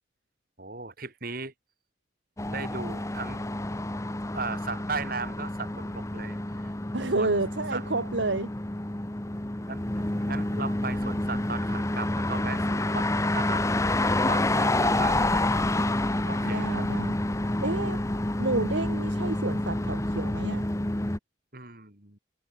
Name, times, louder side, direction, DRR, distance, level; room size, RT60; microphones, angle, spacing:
voice 1, 0.6-1.5 2.5-3.4 4.3-6.7 7.2-7.3 7.7-7.9 9.7-13.7 14.2-15.6 16.2-16.8 21.5-22.2, right 4 dB, 50° right, 5.0 m, -37 dB
sound 1, 2.4-21.2, left 1 dB, 15° left, 0.9 m, -28 dB
voice 2, 6.9-8.5 16.4-17.1 17.6-18.0 18.4-20.6, right 2 dB, 70° right, 1.6 m, -30 dB
head